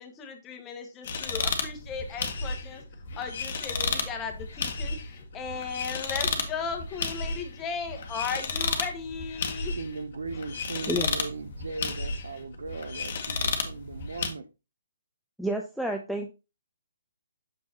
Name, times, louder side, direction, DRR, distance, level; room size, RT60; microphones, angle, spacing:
voice 1, 0.0-2.8 3.2-9.8, left 5 dB, 20° left, 4 dB, 1.2 m, -36 dB
sound 1, 1.0-14.3, left 4 dB, 50° left, 1.2 m, -33 dB
voice 2, 9.7-14.4, right 4 dB, 75° right, 11 dB, 0.8 m, -38 dB
voice 3, 15.4-16.3, equal, ahead, 3 dB, 0.5 m, -30 dB
6.4 x 6.1 x 2.8 m, 0.28 s
figure-of-eight pair, 140°, 0 cm